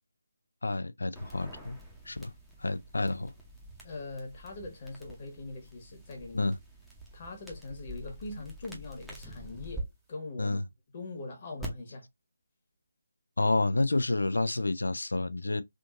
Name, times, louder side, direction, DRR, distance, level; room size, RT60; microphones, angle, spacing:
voice 1, 0.6-1.8 2.1-2.3 2.6-3.3 6.3-6.6 10.4-10.6 13.4-15.6, left 2 dB, 70° left, 0.4 m, -29 dB
sound 1, 1.1-9.8 11.6-11.7, right 1 dB, ahead, 0.7 m, -46 dB
voice 2, 3.8-6.5 7.1-10.6 10.9-12.1, left 2 dB, 30° left, 1.3 m, -42 dB
3.6 x 2.5 x 2.4 m
figure-of-eight pair, 155°, 0 cm